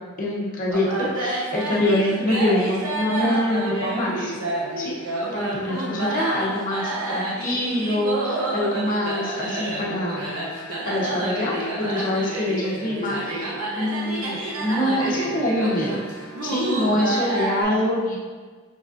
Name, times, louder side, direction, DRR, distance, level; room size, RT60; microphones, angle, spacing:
voice 1, 0.2-4.3 4.8-10.3 10.8-11.5 11.9-16.0 16.4-18.2, left 1 dB, 40° left, -4 dB, 0.9 m, -25 dB
sound 1, 0.7-17.6, right 1 dB, 85° right, 1.0 m, -29 dB
5.4 x 3.9 x 2.5 m, 1.5 s
head